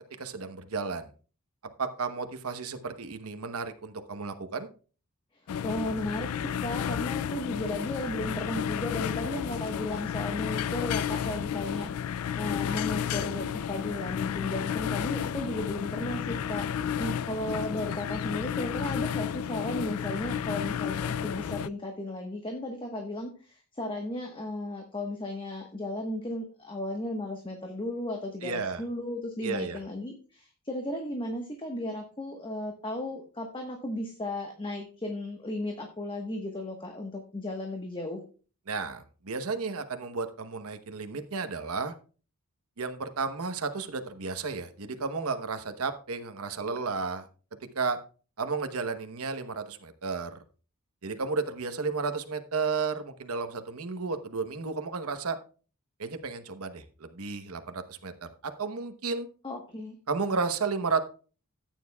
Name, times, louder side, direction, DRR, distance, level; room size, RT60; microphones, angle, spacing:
voice 1, 0.2-1.1 1.8-4.7 28.4-28.8 29.4-29.8 38.7-41.9 42.8-47.2 47.7-48.0 48.4-50.3 51.0-55.4 56.0-59.3 60.1-61.0, right 4 dB, 70° right, 8 dB, 1.0 m, -33 dB
sound 1, 5.5-21.7, left 8 dB, 70° left, 0.4 m, -32 dB
voice 2, 5.6-38.2 59.4-60.0, left 1 dB, 25° left, 2 dB, 1.3 m, -35 dB
14.0 x 9.3 x 2.3 m, 0.37 s
head